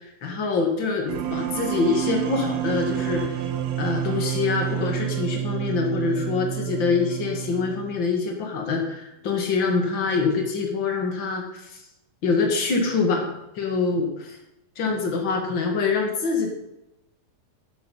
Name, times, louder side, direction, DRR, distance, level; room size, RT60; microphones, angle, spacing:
voice 1, 0.0-3.4 3.8-11.8 12.2-14.4 14.8-16.5, left 4 dB, 40° left, 2 dB, 2.0 m, -25 dB
sound 1, 1.1-8.1, right 11 dB, 80° right, 2.9 m, -29 dB
11.5 x 7.6 x 5.6 m, 0.89 s
omnidirectional pair, 4.5 m